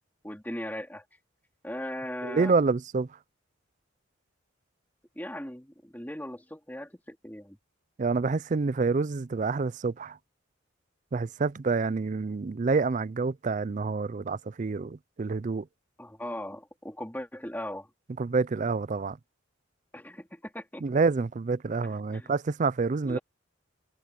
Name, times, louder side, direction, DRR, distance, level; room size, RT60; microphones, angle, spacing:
voice 1, 0.2-1.0 1.6-2.5 5.1-7.6 16.0-17.9 19.9-20.8 21.8-22.3 23.0-23.2, left 1 dB, 10° left, 3.0 m, -38 dB
voice 2, 2.2-3.1 8.0-10.2 11.1-15.7 18.2-19.2 20.8-23.2, right 4 dB, 40° right, 0.4 m, -27 dB
head